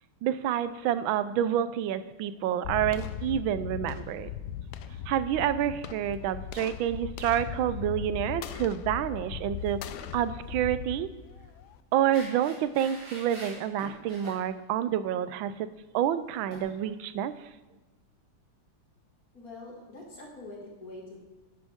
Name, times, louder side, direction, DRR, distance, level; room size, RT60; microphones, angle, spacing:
voice 1, 0.2-4.3 5.1-9.8 10.1-11.1 11.9-15.7 15.9-17.3, right 10 dB, 80° right, 13 dB, 1.4 m, -28 dB
sound 1, 2.6-11.8, left 8 dB, 75° left, 1.0 m, -38 dB
sound 2, 9.6-10.1 10.4-10.6 12.1-14.4 16.5-16.7, right 1 dB, 50° right, 3.6 m, -46 dB
voice 2, 19.3-21.3, left 2 dB, 45° left, -1 dB, 2.7 m, -44 dB
11.5 x 10.5 x 3.6 m, 1.2 s
omnidirectional pair, 2.2 m